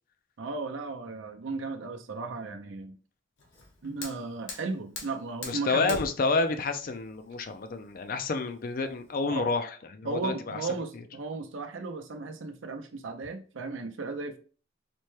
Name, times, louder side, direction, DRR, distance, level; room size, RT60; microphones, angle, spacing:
voice 1, 0.4-3.0 3.8-6.0 9.3-9.5 10.0-14.4, right 3 dB, 75° right, 0.6 m, -35 dB
Fire, 3.4-9.3, left 3 dB, 75° left, 1.0 m, -44 dB
voice 2, 5.4-10.6 10.9-11.0, left 3 dB, 45° left, 0.4 m, -29 dB
4.2 x 2.2 x 3.1 m
head